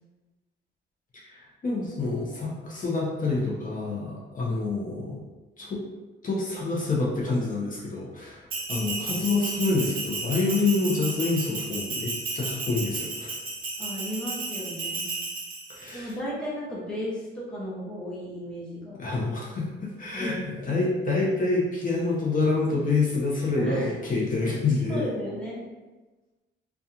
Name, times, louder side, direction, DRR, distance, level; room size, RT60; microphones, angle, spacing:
voice 1, 1.3-5.2 5.6-5.8 6.2-13.3 15.7-16.1 19.0-25.0, left 3 dB, 40° left, -4 dB, 0.7 m, -27 dB
Bell, 8.5-15.9, right 3 dB, 45° right, 0.7 m, -33 dB
voice 2, 13.8-15.1 15.9-19.0 20.1-20.8 23.6-23.9 24.6-25.6, equal, 5° left, -6 dB, 0.8 m, -35 dB
2.8 x 2.3 x 2.4 m, 1.2 s
cardioid pair, 90°, 20 cm